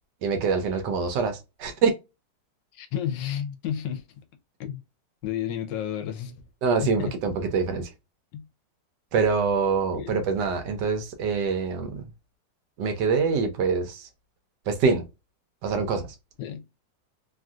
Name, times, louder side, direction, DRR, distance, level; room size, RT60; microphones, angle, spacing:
voice 1, 0.2-1.9 6.6-7.9 9.1-12.1 12.8-14.1 14.7-15.0 15.6-16.1, right 5 dB, 75° right, 1.2 m, -25 dB
voice 2, 2.7-4.0 4.6-4.8 5.2-6.4 6.8-7.1 8.3-8.4 9.9-10.2 16.4-16.6, left 9 dB, 80° left, 1.3 m, -31 dB
3.2 x 2.6 x 2.3 m
omnidirectional pair, 2.0 m